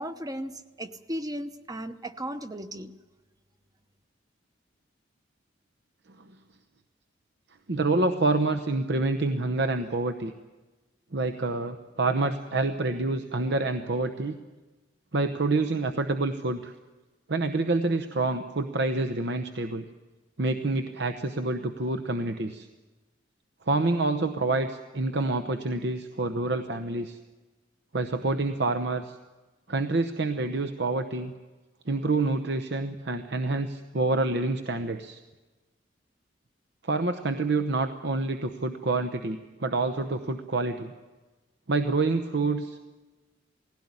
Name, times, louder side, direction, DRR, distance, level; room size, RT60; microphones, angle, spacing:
voice 1, 0.0-2.9, right 1 dB, 20° right, 10 dB, 0.9 m, -36 dB
voice 2, 7.7-10.3 11.1-14.4 15.1-16.7 17.3-19.8 20.4-22.7 23.7-27.2 27.9-29.2 29.7-31.3 31.9-35.2 36.8-40.9 41.7-42.9, right 3 dB, 65° right, 6 dB, 0.9 m, -27 dB
19.5 x 16.5 x 9.7 m, 1.2 s
head